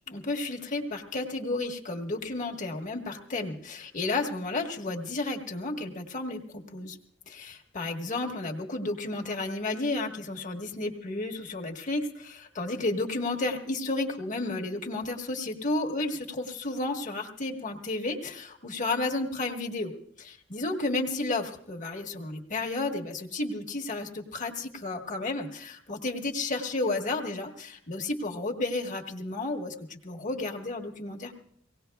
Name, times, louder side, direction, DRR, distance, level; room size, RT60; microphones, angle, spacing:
voice 1, 0.1-6.4 6.7-7.0 7.3-19.9 20.2-31.3, left 2 dB, 40° left, 2 dB, 1.4 m, -32 dB
24.5 x 18.0 x 2.3 m, 0.64 s
head